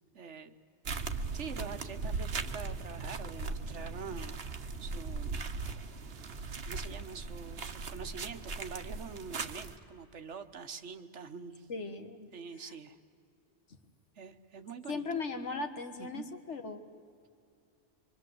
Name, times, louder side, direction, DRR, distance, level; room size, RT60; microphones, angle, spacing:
voice 1, 0.1-0.5 1.3-4.3 4.8-5.4 6.0-11.7 12.3-13.0 14.2-15.0 16.0-16.2, right 5 dB, 80° right, 9 dB, 1.5 m, -45 dB
sound 1, 0.8-9.8, right 4 dB, 60° right, 1.3 m, -38 dB
voice 2, 11.7-12.3 14.9-16.8, left 4 dB, 80° left, 7 dB, 1.9 m, -38 dB
26.0 x 24.0 x 7.9 m, 2.4 s
omnidirectional pair, 1.2 m